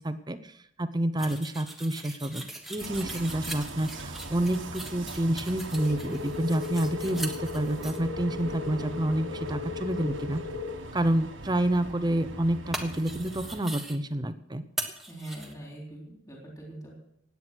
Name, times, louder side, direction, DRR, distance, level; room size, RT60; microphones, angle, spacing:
voice 1, 0.0-10.4 10.9-14.6, right 1 dB, 20° right, 11 dB, 0.8 m, -29 dB
sound 1, 1.2-8.0 12.7-14.0 14.8-15.5, right 1 dB, ahead, 1.4 m, -40 dB
sound 2, 2.8-13.6, right 2 dB, 75° right, 1.6 m, -41 dB
sound 3, 5.7-10.7, left 6 dB, 65° left, 7.5 m, -37 dB
voice 2, 15.1-17.0, right 1 dB, 20° left, -2 dB, 3.7 m, -42 dB
17.0 x 9.7 x 6.3 m, 0.74 s
head